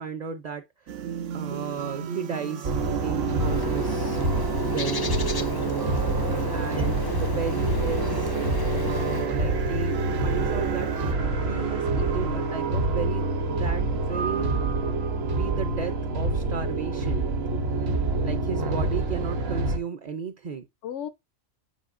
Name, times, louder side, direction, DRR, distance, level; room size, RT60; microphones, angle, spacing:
voice 1, 0.0-4.2 4.7-5.1 6.5-8.3 8.7-10.9 11.5-14.6 15.3-17.2 18.2-20.6, right 7 dB, 45° right, 0.6 m, -34 dB
sound 1, 0.9-11.1, right 8 dB, 90° right, 1.1 m, -35 dB
sound 2, 2.6-19.8, right 3 dB, 65° right, 1.2 m, -26 dB
Bird, 3.3-9.3, left 4 dB, 35° left, 0.4 m, -34 dB
voice 2, 5.0-6.5 20.8-21.1, left 9 dB, 75° left, 0.9 m, -40 dB
9.2 x 4.7 x 2.5 m
omnidirectional pair, 1.2 m